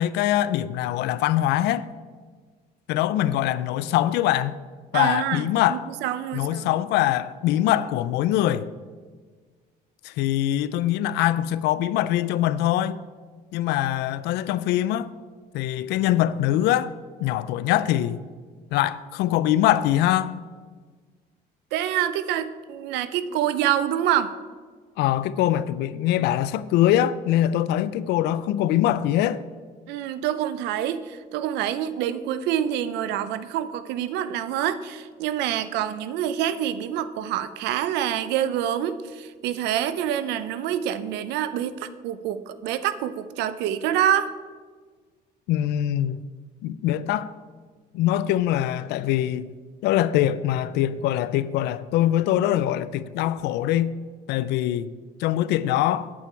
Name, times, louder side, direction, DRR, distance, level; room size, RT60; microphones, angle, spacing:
voice 1, 0.0-1.9 2.9-4.6 4.9-5.9 6.3-8.7 10.0-13.0 13.5-15.1 15.5-16.9 17.2-18.2 18.7-20.4 25.0-29.4 45.5-46.2 46.6-47.3 47.9-49.5 49.8-53.9 54.3-54.9 55.2-56.1, left 12 dB, 85° left, 0.4 m, -23 dB
voice 2, 4.9-6.7 21.7-24.3 29.9-44.3, right 10 dB, 90° right, 0.6 m, -26 dB
8.6 x 8.5 x 4.5 m
cardioid pair, 110°, 17 cm